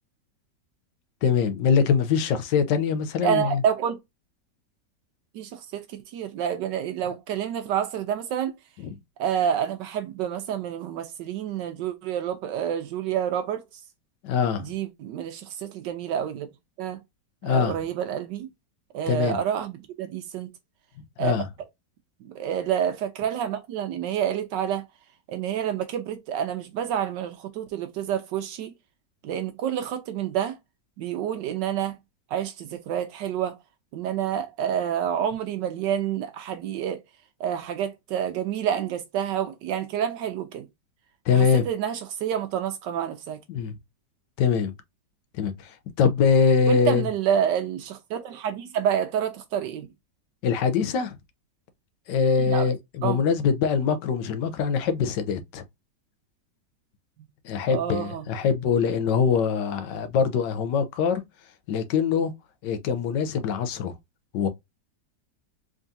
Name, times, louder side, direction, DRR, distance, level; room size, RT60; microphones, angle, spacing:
voice 1, 1.2-3.6 8.8-8.9 14.2-14.7 17.4-17.8 19.1-19.4 21.2-21.5 41.3-41.6 43.5-43.7 44.4-44.7 45.4-47.0 50.4-51.2 52.1-55.6 57.4-61.2 61.7-62.3 62.6-63.9 64.3-64.5, left 6 dB, 75° left, 1.3 m, -23 dB
voice 2, 3.2-4.0 5.3-8.5 9.2-13.6 14.6-16.5 16.8-17.0 17.4-18.5 18.9-20.5 21.2-21.4 22.2-24.9 25.3-28.7 29.2-30.6 31.0-32.0 32.3-33.6 33.9-37.0 37.4-40.7 41.3-43.4 46.7-49.9 52.5-52.7 53.0-53.2 57.7-58.3, right 9 dB, 80° right, 1.2 m, -28 dB
3.7 x 3.6 x 2.6 m
omnidirectional pair, 1.9 m